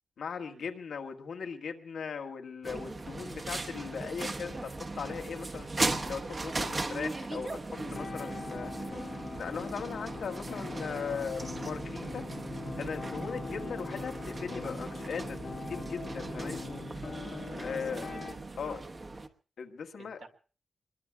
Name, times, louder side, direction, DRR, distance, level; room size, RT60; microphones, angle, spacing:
voice 1, 0.2-5.7 6.1-8.7 9.3-12.2 12.8-15.4 15.7-16.8 17.6-18.1 18.6-18.8 19.6-20.2, left 6 dB, 85° left, 4 dB, 1.5 m, -39 dB
sound 1, 2.6-19.3, right 2 dB, 30° right, 1.0 m, -38 dB
sound 2, 7.8-18.3, left 4 dB, 65° left, 1.9 m, -42 dB
voice 2, 16.4-16.8 17.2-18.9 20.0-20.3, right 5 dB, 70° right, 3 dB, 2.3 m, -54 dB
25.5 x 22.0 x 2.3 m, 0.38 s
wide cardioid pair, 130°, 0 cm